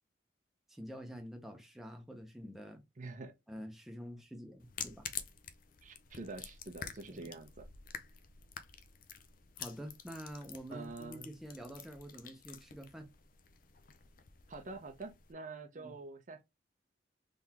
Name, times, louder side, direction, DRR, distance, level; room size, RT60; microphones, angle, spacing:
voice 1, 0.7-2.8 3.5-5.1 7.1-7.3 9.6-13.1 15.7-16.0, equal, ahead, 0.8 m, -47 dB
voice 2, 3.0-3.4 5.8-7.7 10.7-11.3 14.5-16.4, right 3 dB, 45° right, 0.6 m, -46 dB
sound 1, 4.6-15.3, left 8 dB, 50° left, 0.5 m, -49 dB
3.9 x 3.4 x 2.9 m
head